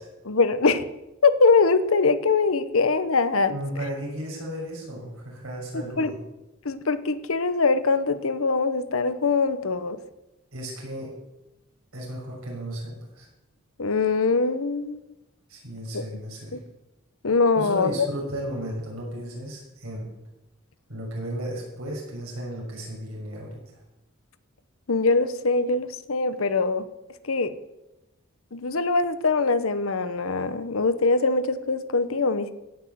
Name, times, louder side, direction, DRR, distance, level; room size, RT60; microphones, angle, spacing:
voice 1, 0.2-0.8 1.2-3.5 6.0-6.1 6.6-10.0 13.8-15.1 15.9-16.0 16.5-16.6 17.2-18.1 24.9-26.9 27.2-27.5 28.5-32.5, left 4 dB, 80° left, 12 dB, 0.9 m, -22 dB
voice 2, 3.5-6.2 10.5-11.1 11.9-13.3 15.5-16.6 17.5-20.1 20.9-23.6, right 1 dB, 85° right, -3 dB, 6.2 m, -34 dB
17.0 x 6.2 x 7.8 m, 0.98 s
head